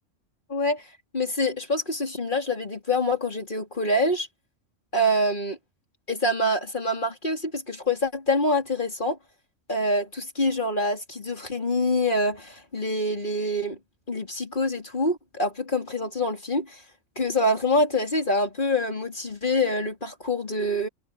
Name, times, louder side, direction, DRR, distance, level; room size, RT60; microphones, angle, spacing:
voice 1, 0.5-0.8 1.1-4.3 4.9-5.5 6.1-9.2 9.7-13.8 14.1-16.8 17.2-20.9, left 1 dB, 40° left, 3.8 m, -25 dB
omnidirectional pair, 1.3 m